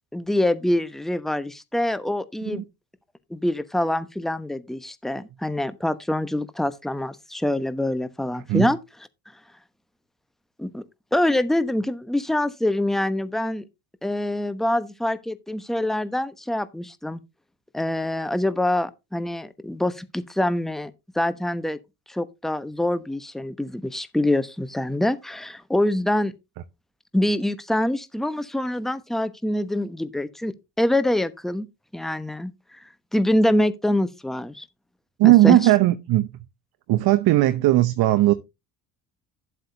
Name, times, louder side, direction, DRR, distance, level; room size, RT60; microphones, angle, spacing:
voice 1, 0.1-2.7 3.3-8.8 10.6-10.8 11.1-13.6 14.0-17.2 17.7-21.8 22.1-26.3 27.1-31.7 31.9-32.5 33.1-34.6 35.2-35.6, left 1 dB, ahead, 1.0 m, -25 dB
voice 2, 35.2-36.3 36.9-38.3, right 16 dB, 50° right, 0.9 m, -17 dB
12.0 x 7.7 x 2.8 m
hypercardioid pair, 60°, 47 cm